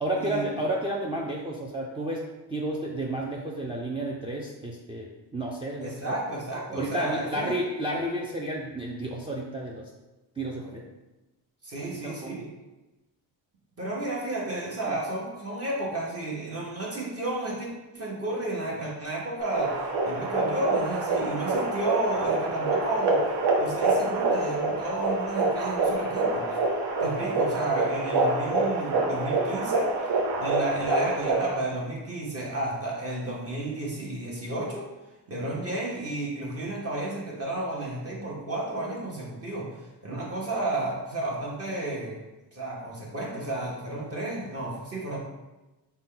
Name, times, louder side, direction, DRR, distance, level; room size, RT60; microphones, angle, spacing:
voice 1, 0.0-6.1 6.7-9.9 10.4-10.8 11.8-12.4 14.9-15.0 40.1-40.3, right 1 dB, 15° right, -3 dB, 0.4 m, -32 dB
voice 2, 5.8-7.6 11.6-12.5 13.8-26.6 27.0-29.9 30.4-34.9 35.3-42.2 42.5-45.2, right 2 dB, 35° right, -4 dB, 1.0 m, -32 dB
sound 1, 19.4-31.6, right 2 dB, 70° right, 0.8 m, -26 dB
4.0 x 2.2 x 3.7 m, 1.1 s
cardioid pair, 90°, 42 cm